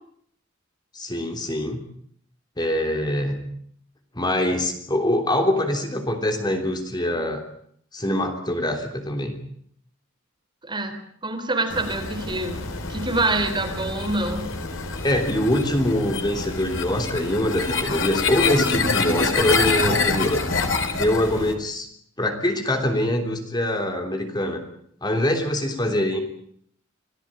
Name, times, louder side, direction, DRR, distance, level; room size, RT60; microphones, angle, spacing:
voice 1, 0.9-1.8 2.6-3.5 4.1-7.4 7.9-9.4 15.0-20.4 20.9-21.9 22.2-24.6 25.0-26.2, left 1 dB, 20° left, 5 dB, 3.3 m, -24 dB
voice 2, 10.6-11.0 11.2-14.5, right 2 dB, 25° right, 5 dB, 3.9 m, -26 dB
sound 1, 11.7-21.5, left 4 dB, 75° left, 3.5 m, -26 dB
26.5 x 17.5 x 8.9 m, 0.65 s
head